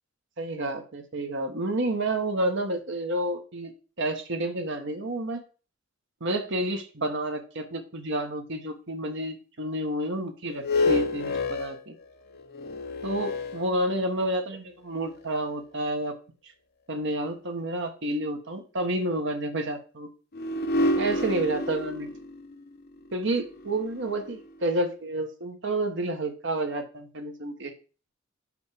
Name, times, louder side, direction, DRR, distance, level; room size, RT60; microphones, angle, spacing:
voice 1, 0.4-3.7 4.0-5.4 6.2-11.9 13.0-16.1 16.9-20.1 20.9-22.1 23.1-27.7, right 1 dB, 65° right, 5 dB, 1.3 m, -30 dB
sound 1, 10.5-14.3 15.0-15.1 20.3-24.6, left 2 dB, 50° left, 0.8 m, -29 dB
5.6 x 5.2 x 5.0 m, 0.35 s
head